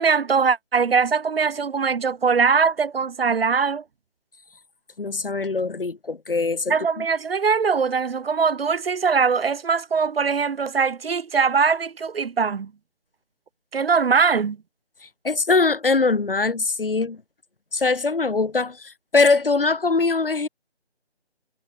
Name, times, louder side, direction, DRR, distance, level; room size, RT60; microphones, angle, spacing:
voice 1, 0.0-3.8 6.7-12.7 13.7-14.6, right 5 dB, 65° right, 0.4 m, -21 dB
voice 2, 5.0-7.0 15.2-17.2 17.7-20.5, left 3 dB, 55° left, 1.1 m, -22 dB
figure-of-eight pair, 165°, 32 cm